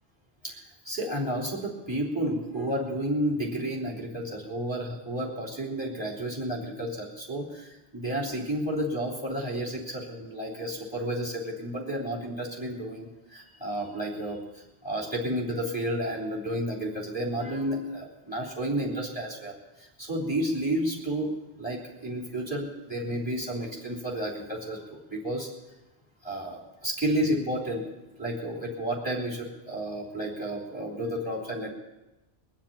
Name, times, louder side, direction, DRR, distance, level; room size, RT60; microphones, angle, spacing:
voice 1, 0.4-25.5 26.2-27.8 28.2-31.7, right 1 dB, 10° right, -2 dB, 3.3 m, -31 dB
21.0 x 7.4 x 8.7 m, 1.0 s
omnidirectional pair, 1.1 m